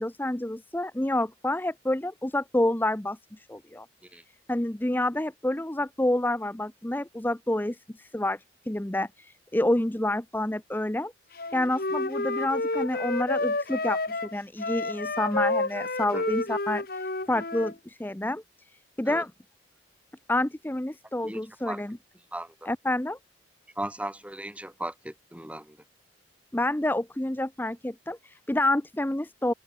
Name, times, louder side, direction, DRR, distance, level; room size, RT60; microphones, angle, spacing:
voice 1, 0.0-3.9 4.5-8.4 8.7-11.1 11.5-17.0 17.3-18.4 19.0-19.3 20.3-22.0 22.7-23.2 26.5-29.5, left 1 dB, 10° left, 0.6 m, -28 dB
Wind instrument woodwind instrument, 11.4-17.7, left 2 dB, 50° left, 2.4 m, -30 dB
voice 2, 21.2-21.8 22.3-22.7 23.8-25.8, right 1 dB, 5° right, 4.6 m, -37 dB
head